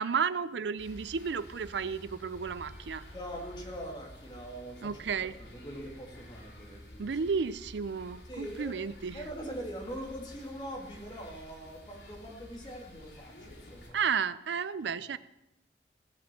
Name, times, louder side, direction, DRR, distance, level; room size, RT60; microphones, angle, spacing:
voice 1, 0.0-3.0 4.8-5.3 7.0-9.3 13.9-15.2, right 6 dB, 80° right, 16 dB, 0.5 m, -32 dB
sound 1, 0.8-13.9, left 1 dB, 90° left, 3.6 m, -51 dB
voice 2, 3.1-4.9 5.4-7.1 8.3-8.8 9.1-14.0, equal, 25° left, 1 dB, 2.1 m, -42 dB
16.0 x 6.1 x 7.5 m, 0.87 s
head